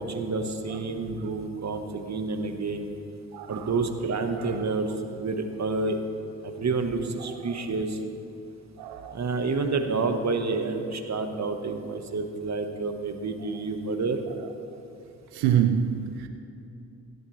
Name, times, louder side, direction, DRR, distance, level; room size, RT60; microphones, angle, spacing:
voice 1, 0.0-2.9 3.5-6.0 6.4-8.0 9.1-14.2, right 3 dB, 45° right, 1.3 m, -29 dB
voice 2, 3.3-3.7 4.4-4.6 7.5-7.6 8.8-9.2 15.3-16.3, right 9 dB, 85° right, 0.5 m, -26 dB
17.0 x 11.0 x 3.2 m
hypercardioid pair, 45°, 38 cm